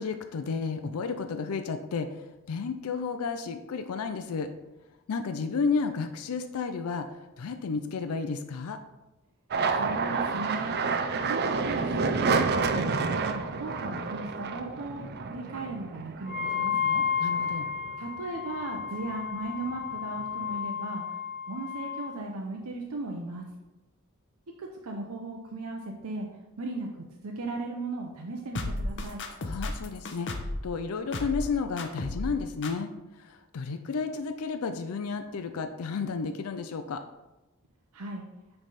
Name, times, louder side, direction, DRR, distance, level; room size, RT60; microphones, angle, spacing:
voice 1, 0.0-2.1 2.5-4.5 5.1-7.1 7.4-8.8 17.2-17.7 29.4-32.9 33.2-37.0, left 5 dB, 85° left, 7 dB, 0.5 m, -32 dB
sound 1, 9.5-18.2 18.6-19.4 19.7-20.6, right 4 dB, 50° right, 0.5 m, -30 dB
voice 2, 9.8-10.7 11.2-15.0 15.3-17.0 18.0-21.0 21.5-23.4 24.6-26.3 26.6-26.9 27.2-29.2 37.9-38.2, right 2 dB, 85° right, 1 dB, 0.8 m, -37 dB
Wind instrument woodwind instrument, 16.2-22.1, left 7 dB, ahead, 2.5 m, -32 dB
sound 2, 28.5-30.6 31.1-31.5 31.8-32.3 32.6-32.7, left 2 dB, 60° left, 0.8 m, -33 dB
9.1 x 3.4 x 4.1 m, 1.0 s
head